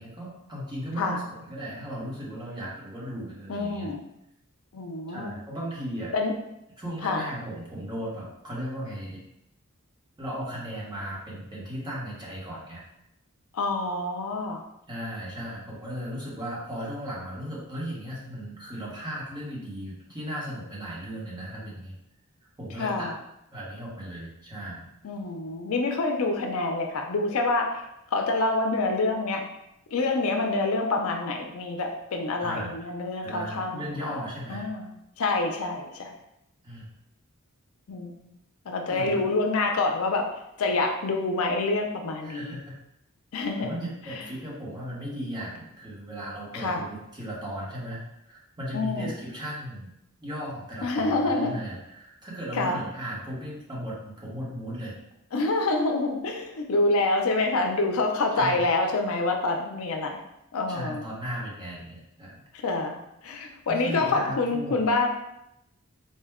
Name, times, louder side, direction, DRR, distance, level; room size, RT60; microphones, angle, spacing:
voice 1, 0.0-3.9 5.1-6.1 6.8-9.2 10.2-12.8 14.9-22.0 22.6-23.1 23.5-24.9 32.4-32.8 33.2-34.7 36.6-36.9 38.9-39.2 42.2-42.8 43.6-49.9 50.2-55.0 58.3-58.6 60.7-62.4 63.7-64.8, equal, 20° right, -6 dB, 1.1 m, -36 dB
voice 2, 3.5-4.0 4.7-5.3 6.1-6.3 7.0-7.2 13.5-14.6 22.8-23.1 25.0-27.8 28.1-29.4 29.9-34.1 34.5-34.9 35.2-36.1 37.9-38.1 38.7-40.3 40.6-42.6 43.3-43.7 44.1-44.2 46.5-46.8 48.7-49.1 50.8-51.6 52.5-52.8 55.3-60.2 60.5-61.0 62.6-63.0 63.2-65.1, left 3 dB, 70° left, 2 dB, 0.5 m, -27 dB
4.2 x 2.1 x 3.5 m, 0.83 s
head